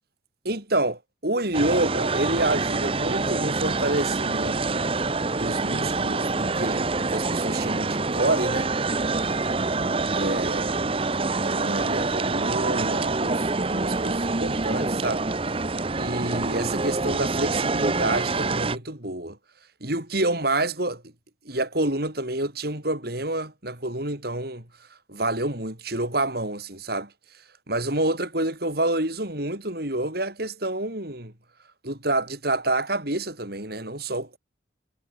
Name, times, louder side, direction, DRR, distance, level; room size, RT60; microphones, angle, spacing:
voice 1, 0.4-4.9 5.3-8.7 10.1-10.8 11.4-15.2 15.9-19.4 19.8-21.0 21.5-24.6 25.1-27.1 27.7-31.3 31.8-34.4, right 2 dB, 55° right, 5.6 m, -28 dB
sound 1, 1.5-18.8, right 3 dB, 30° right, 0.9 m, -26 dB
head